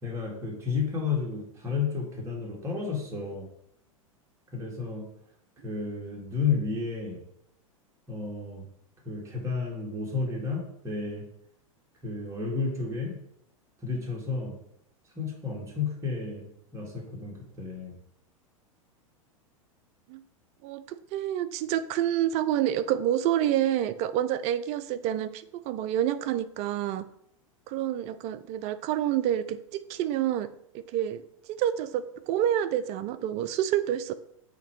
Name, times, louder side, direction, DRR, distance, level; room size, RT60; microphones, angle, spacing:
voice 1, 0.0-3.5 4.5-5.0 5.6-7.2 8.1-8.7 9.1-11.3 12.0-13.2 13.8-14.5 15.2-16.5 16.7-18.0, left 5 dB, 15° right, -2 dB, 1.9 m, -32 dB
voice 2, 21.1-27.1 27.7-30.5 30.7-31.2 31.5-34.1, right 11 dB, 40° right, 14 dB, 0.4 m, -28 dB
7.8 x 2.9 x 4.6 m, 0.74 s
hypercardioid pair, 100°, 18 cm